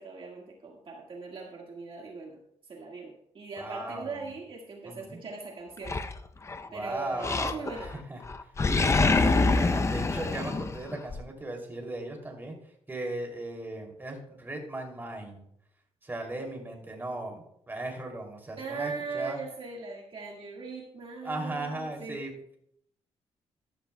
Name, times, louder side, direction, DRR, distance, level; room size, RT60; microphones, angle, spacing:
voice 1, 0.0-2.4 2.7-6.0 6.7-7.9 18.6-22.2, right 4 dB, 50° right, -1 dB, 1.8 m, -40 dB
voice 2, 3.6-4.3 4.8-5.2 6.7-7.7 8.1-8.2 8.6-12.5 12.9-15.4 16.0-19.4 21.2-22.3, right 2 dB, 20° right, 1 dB, 2.8 m, -37 dB
Animal, 5.9-6.7 7.2-8.0 8.3-11.2, left 3 dB, 25° left, 0.6 m, -26 dB
14.5 x 12.0 x 2.3 m, 0.72 s
cardioid pair, 115°, 12 cm